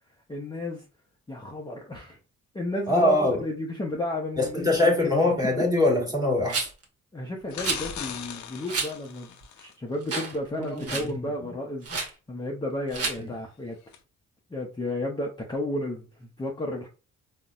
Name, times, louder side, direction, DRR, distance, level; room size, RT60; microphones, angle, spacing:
voice 1, 0.3-0.8 1.3-2.2 2.5-5.3 7.1-13.8 14.5-16.9, left 1 dB, 15° left, 0.6 m, -33 dB
voice 2, 2.9-3.4 4.4-6.7 10.6-10.8, left 1 dB, 10° right, 1.4 m, -23 dB
Rattle, 6.5-6.8 7.6-7.8 8.7-8.9 9.4-9.5 10.0-10.4 10.6-11.1 11.8-12.1 12.9-13.2, right 4 dB, 50° right, 1.0 m, -30 dB
sound 1, 7.5-9.7 13.9-14.0, left 8 dB, 70° left, 0.6 m, -38 dB
3.8 x 2.1 x 2.3 m
cardioid pair, 90°, 30 cm